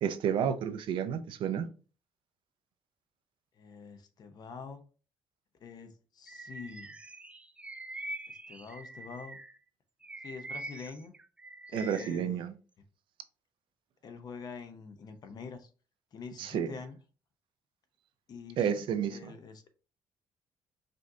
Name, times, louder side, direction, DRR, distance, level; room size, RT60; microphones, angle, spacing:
voice 1, 0.0-1.7 11.7-12.5 16.4-16.7 18.6-19.3, right 8 dB, 70° right, 0.5 m, -31 dB
voice 2, 3.6-4.8 5.6-7.0 8.3-9.4 10.2-11.1 11.7-12.5 14.0-15.7 16.1-17.0 18.3-19.7, left 5 dB, 50° left, 0.7 m, -46 dB
Bird vocalization bird call bird song, 6.3-9.6 10.0-12.2, right 2 dB, 15° right, 0.4 m, -44 dB
5.0 x 2.5 x 2.6 m
cardioid pair, 115°, 9 cm